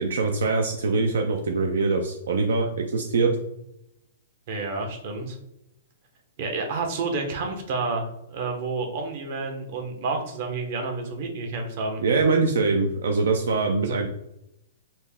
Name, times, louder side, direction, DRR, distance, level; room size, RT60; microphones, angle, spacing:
voice 1, 0.0-3.4 12.0-14.1, right 4 dB, 80° right, 3 dB, 0.4 m, -23 dB
voice 2, 4.5-5.4 6.4-12.0 13.8-14.0, right 3 dB, 50° right, 3 dB, 0.9 m, -30 dB
4.2 x 2.2 x 3.5 m, 0.82 s
hypercardioid pair, 150°, 0 cm